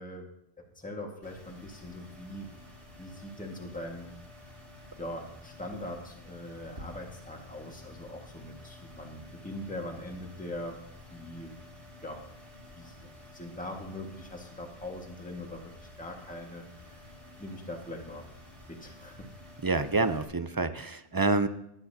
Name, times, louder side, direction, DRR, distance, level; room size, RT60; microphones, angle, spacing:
voice 1, 0.0-2.5 3.0-4.1 5.0-10.8 11.1-11.6 12.0-12.2 12.7-17.0 17.4-18.3 18.7-19.3, left 1 dB, 10° left, 1 dB, 1.6 m, -42 dB
sound 1, 1.2-20.3, left 1 dB, 90° right, 3.7 m, -51 dB
voice 2, 19.6-21.5, right 3 dB, 30° right, 10 dB, 0.5 m, -27 dB
20.0 x 10.5 x 2.8 m, 0.81 s
omnidirectional pair, 1.0 m